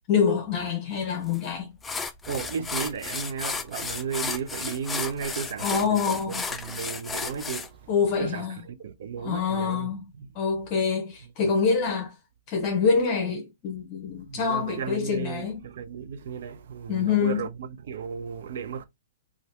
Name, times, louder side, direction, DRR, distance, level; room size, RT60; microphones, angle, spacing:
voice 1, 0.1-1.7 5.6-6.4 7.9-8.6 9.2-10.0 10.3-12.1 12.5-15.6 16.9-17.5, left 6 dB, 35° left, 0.7 m, -26 dB
sound 1, 1.3-1.5 1.8-7.7, left 4 dB, 10° left, 0.4 m, -33 dB
voice 2, 2.3-7.8 8.2-9.9 10.2-10.3 14.2-18.8, right 7 dB, 65° right, 0.6 m, -34 dB
2.7 x 2.5 x 3.3 m
hypercardioid pair, 135°, 0 cm